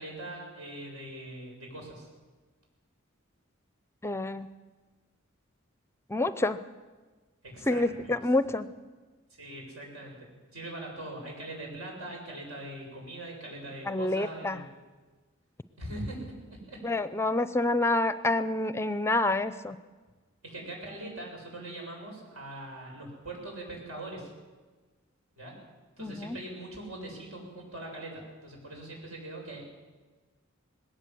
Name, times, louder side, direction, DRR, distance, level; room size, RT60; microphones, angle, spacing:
voice 1, 0.0-2.1 7.4-8.2 9.4-14.7 15.8-17.0 20.4-24.3 25.4-25.6 26.0-29.7, right 1 dB, 75° right, 0 dB, 7.5 m, -42 dB
voice 2, 4.0-4.5 6.1-6.6 7.7-8.7 13.9-14.6 16.8-19.8 26.0-26.4, left 2 dB, 10° left, 13 dB, 0.5 m, -28 dB
20.0 x 17.5 x 7.7 m, 1.3 s
head